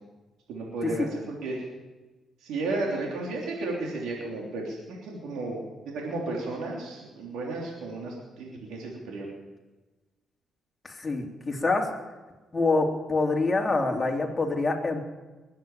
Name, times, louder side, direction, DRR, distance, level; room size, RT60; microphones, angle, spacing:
voice 1, 0.5-1.6 2.4-5.6 5.9-9.3, right 2 dB, 85° right, -2 dB, 3.2 m, -33 dB
voice 2, 10.8-11.8 12.5-15.0, left 3 dB, 25° left, 0 dB, 3.3 m, -26 dB
21.0 x 9.2 x 7.2 m, 1.2 s
cardioid pair, 90°, 0 cm